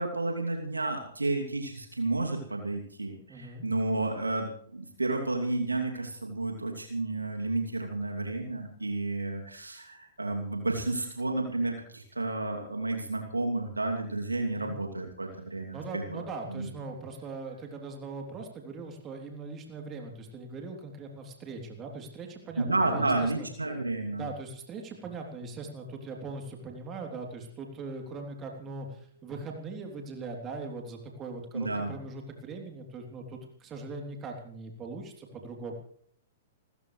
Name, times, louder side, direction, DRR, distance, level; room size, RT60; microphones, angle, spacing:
voice 1, 0.0-16.2 16.5-16.7 22.6-24.2 31.5-32.0, right 2 dB, 80° right, 2 dB, 2.8 m, -31 dB
voice 2, 3.3-3.6 14.5-14.7 15.7-23.5 24.1-35.7, right 3 dB, 25° right, 2 dB, 3.3 m, -40 dB
29.0 x 14.0 x 3.3 m, 0.62 s
figure-of-eight pair, 110°, 0 cm